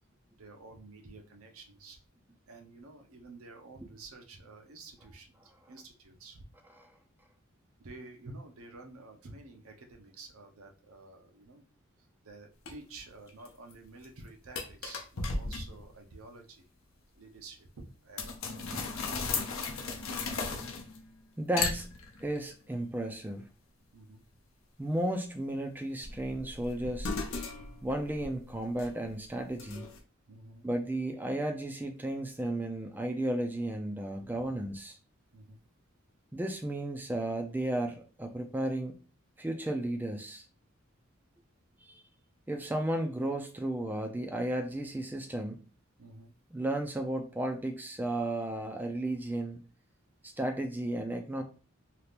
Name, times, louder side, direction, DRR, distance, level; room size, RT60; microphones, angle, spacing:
voice 1, 0.4-2.0 2.5-6.4 7.8-11.6 12.2-16.6 17.1-19.6 23.9-24.2 30.3-30.7 34.1-34.8 35.3-35.6 46.0-46.3, right 2 dB, 80° right, 3 dB, 0.7 m, -50 dB
sound 1, 12.7-12.8 13.3-13.7 14.0-14.1 14.6-15.9 18.2-21.1 21.6-22.4 26.0-29.1 29.6-30.0, left 4 dB, 70° left, 0.7 m, -36 dB
voice 2, 21.4-21.9 22.2-23.5 24.8-27.1 27.8-29.9 30.6-35.0 36.3-38.9 39.4-40.4 41.8-42.0 42.5-45.6 46.5-49.6 50.2-51.4, right 1 dB, 10° right, 4 dB, 0.3 m, -34 dB
2.8 x 2.4 x 3.4 m, 0.37 s
head